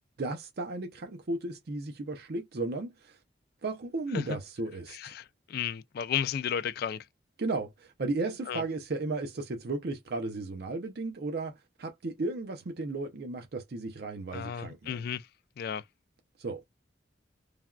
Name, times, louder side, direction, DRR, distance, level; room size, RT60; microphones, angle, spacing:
voice 1, 0.2-3.2 3.6-5.1 7.4-15.0 16.4-16.6, right 3 dB, 60° right, 0.5 m, -35 dB
voice 2, 4.9-7.1 8.5-8.6 14.3-15.3 15.6-15.8, left 8 dB, 55° left, 0.3 m, -33 dB
3.3 x 2.3 x 2.2 m
head